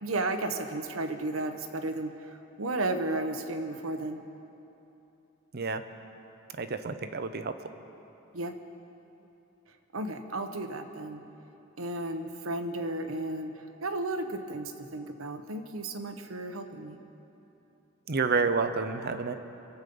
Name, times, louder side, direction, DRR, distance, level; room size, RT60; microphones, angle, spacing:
voice 1, 0.0-4.2 8.3-8.5 9.9-11.2 11.8-17.0, right 2 dB, 85° right, 7 dB, 1.0 m, -34 dB
voice 2, 6.6-7.5 18.1-19.3, right 4 dB, 50° right, 9 dB, 0.7 m, -29 dB
24.5 x 8.3 x 5.4 m, 3.0 s
head